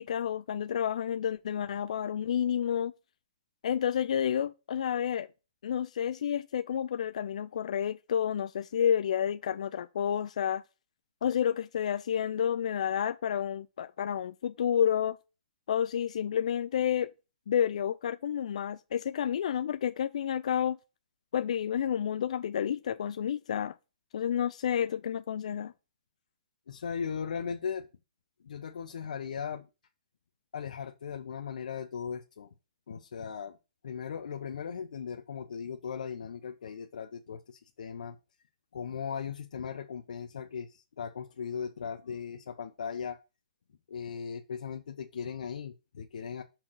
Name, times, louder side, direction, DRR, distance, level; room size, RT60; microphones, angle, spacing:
voice 1, 0.0-2.9 3.6-5.3 5.6-10.6 11.2-15.2 15.7-17.1 17.5-20.8 21.3-23.8 24.1-25.7, left 9 dB, 55° left, 0.4 m, -30 dB
voice 2, 26.7-27.9 28.4-29.7 30.5-32.5 32.9-33.6 33.8-38.2 38.7-43.2 43.9-46.4, left 7 dB, 75° left, 0.8 m, -38 dB
5.9 x 3.8 x 6.1 m
hypercardioid pair, 170°, 4 cm